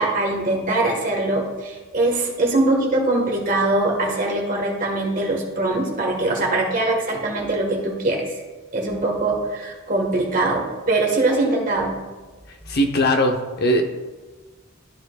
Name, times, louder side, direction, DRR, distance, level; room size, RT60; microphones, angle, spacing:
voice 1, 0.0-8.4 8.7-12.0, right 2 dB, 40° right, 0 dB, 1.5 m, -22 dB
voice 2, 12.5-13.8, equal, 50° left, 4 dB, 0.7 m, -20 dB
13.0 x 4.5 x 2.4 m, 1.3 s
head